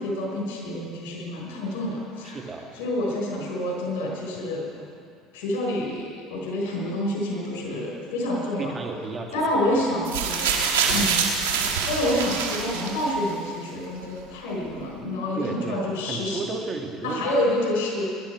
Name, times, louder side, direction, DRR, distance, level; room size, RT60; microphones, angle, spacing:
voice 1, 0.0-2.4 2.7-4.8 5.3-8.8 9.3-10.6 10.9-11.3 11.9-16.4 17.0-18.0, left 1 dB, 80° left, -2 dB, 5.1 m, -28 dB
voice 2, 2.2-2.7 8.6-9.3 10.9-11.1 15.4-17.3, right 3 dB, 30° right, 2 dB, 2.1 m, -33 dB
sound 1, 10.0-13.3 14.2-14.3, right 6 dB, 90° right, 2.0 m, -25 dB
21.0 x 11.5 x 4.7 m, 2.2 s
supercardioid pair, 90°, 0 cm